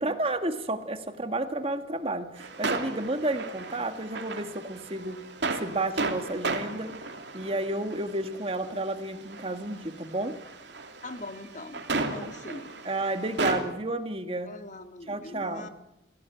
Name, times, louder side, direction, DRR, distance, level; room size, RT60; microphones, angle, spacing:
voice 1, 0.0-5.2 5.5-6.9 7.3-10.4 12.8-14.5 15.1-15.7, right 2 dB, 30° right, 8 dB, 1.7 m, -31 dB
sound 1, 2.4-13.6, right 3 dB, 70° right, 3.1 m, -34 dB
voice 2, 11.0-12.7 14.4-15.7, left 2 dB, 40° left, 7 dB, 1.9 m, -42 dB
28.0 x 17.5 x 9.2 m, 0.90 s
head